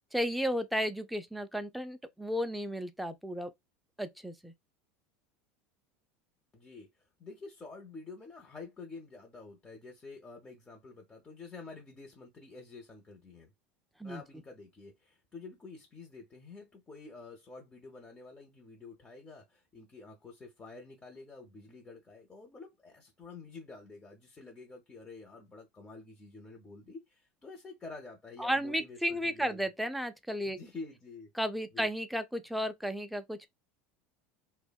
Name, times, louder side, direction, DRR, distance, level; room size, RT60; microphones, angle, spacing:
voice 1, 0.1-3.5 4.0-4.5 14.0-14.2 28.4-30.6 31.4-33.5, equal, ahead, 0.4 m, -33 dB
voice 2, 6.5-13.5 14.0-29.6 30.4-31.3 31.7-31.9, left 3 dB, 20° left, 0.7 m, -49 dB
2.5 x 2.1 x 2.2 m
hypercardioid pair, 90°, 7 cm